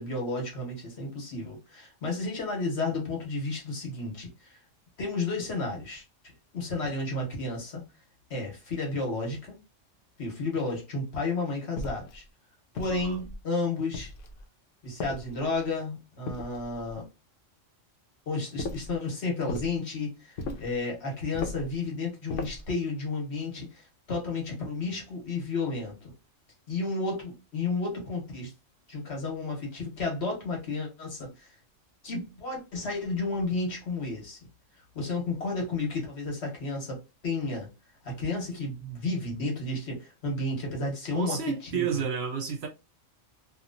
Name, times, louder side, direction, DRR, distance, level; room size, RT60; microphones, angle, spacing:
voice 1, 0.0-4.6 5.0-6.0 6.5-7.8 8.3-9.5 10.2-12.2 12.7-14.1 14.8-17.1 18.3-26.1 26.7-28.5 28.9-31.5 32.0-34.4 34.9-37.7 38.0-41.8, left 3 dB, 60° left, 1.3 m, -32 dB
sound 1, 11.8-12.2 12.8-13.4 13.9-14.4 15.0-15.6 16.3-16.9 18.6-19.0 19.5-19.8 20.4-20.8 21.3-21.7 22.3-22.7, left 3 dB, 80° left, 0.9 m, -37 dB
voice 2, 41.1-42.7, right 7 dB, 65° right, 0.7 m, -31 dB
2.9 x 2.4 x 2.6 m
omnidirectional pair, 1.3 m